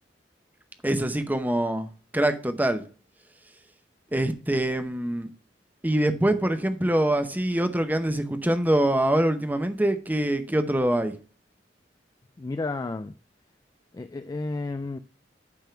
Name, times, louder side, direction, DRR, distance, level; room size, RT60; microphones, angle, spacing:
voice 1, 0.8-2.8 4.1-5.3 5.8-11.1, right 1 dB, 10° right, 0.8 m, -24 dB
voice 2, 12.4-13.1 13.9-15.0, left 3 dB, 20° left, 0.3 m, -32 dB
9.0 x 3.7 x 5.5 m
head